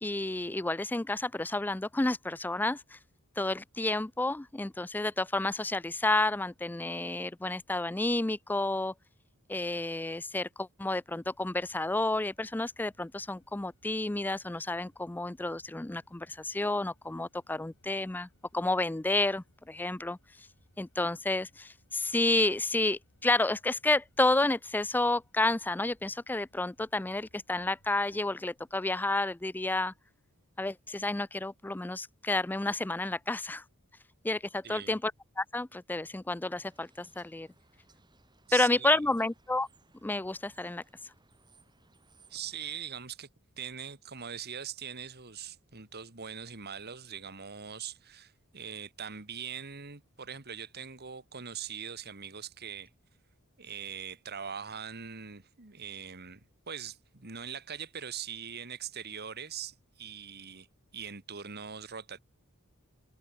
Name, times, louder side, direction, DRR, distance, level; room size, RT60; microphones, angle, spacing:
voice 1, 0.0-3.0 3.4-8.9 9.5-20.2 20.8-29.9 30.6-33.6 34.2-35.1 35.4-37.5 38.5-39.7 40.0-40.8, left 2 dB, 10° left, 0.4 m, -30 dB
sound 1, 11.2-28.2, left 1 dB, 60° left, 6.9 m, -69 dB
voice 2, 34.6-35.0 38.5-39.0 42.3-43.3 43.6-52.9 53.6-60.7 60.9-62.2, right 7 dB, 50° right, 2.1 m, -42 dB
sound 2, 36.5-42.8, right 3 dB, 20° right, 7.4 m, -64 dB
head